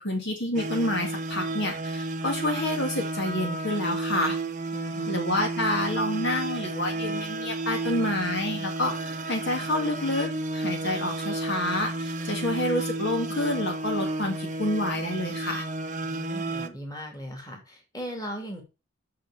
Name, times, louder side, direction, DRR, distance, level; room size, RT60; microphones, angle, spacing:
voice 1, 0.0-4.4 5.1-15.6, left 1 dB, 50° left, 2 dB, 2.0 m, -28 dB
sound 1, 0.5-16.7, right 2 dB, 35° right, 0.9 m, -32 dB
voice 2, 4.7-5.2 16.0-18.6, equal, 15° left, 2 dB, 2.7 m, -38 dB
6.4 x 6.3 x 7.1 m, 0.30 s
head